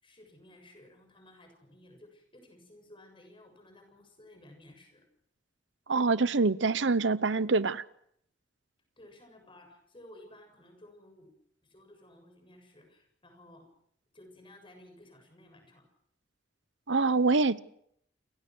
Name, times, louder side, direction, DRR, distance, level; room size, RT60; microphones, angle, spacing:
voice 1, 0.0-5.0 9.0-11.3 11.6-13.7 14.1-15.9, left 1 dB, 30° left, 7.3 m, -55 dB
voice 2, 5.9-7.8 16.9-17.6, right 3 dB, 80° right, 0.9 m, -25 dB
29.5 x 23.5 x 6.3 m
head